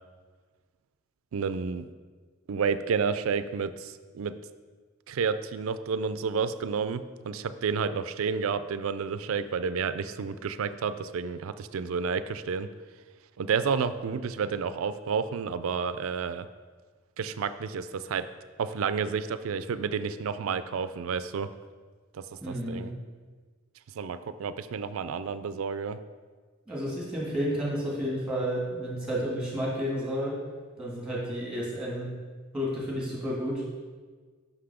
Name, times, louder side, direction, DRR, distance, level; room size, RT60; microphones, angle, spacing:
voice 1, 1.3-1.9 2.5-4.4 5.1-12.7 13.4-16.5 17.2-18.3 18.6-21.5 22.1-22.9 24.0-26.0, right 6 dB, 85° right, 13 dB, 0.4 m, -30 dB
voice 2, 22.4-22.9 26.7-30.3 30.8-32.1 32.5-33.6, equal, 5° right, -5 dB, 2.2 m, -31 dB
6.1 x 5.8 x 4.9 m, 1.5 s
head